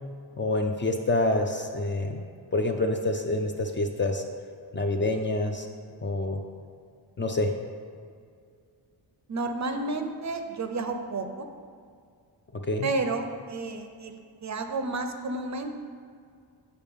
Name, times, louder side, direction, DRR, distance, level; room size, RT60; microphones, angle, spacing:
voice 1, 0.4-2.2 2.5-4.2 4.7-5.7 6.0-6.4 7.2-7.5 12.6-12.9, left 2 dB, 25° left, 4 dB, 0.5 m, -27 dB
voice 2, 9.3-11.5 12.8-15.7, right 3 dB, 40° right, 6 dB, 0.5 m, -31 dB
6.7 x 5.5 x 3.6 m, 2.2 s
cardioid pair, 85°, 44 cm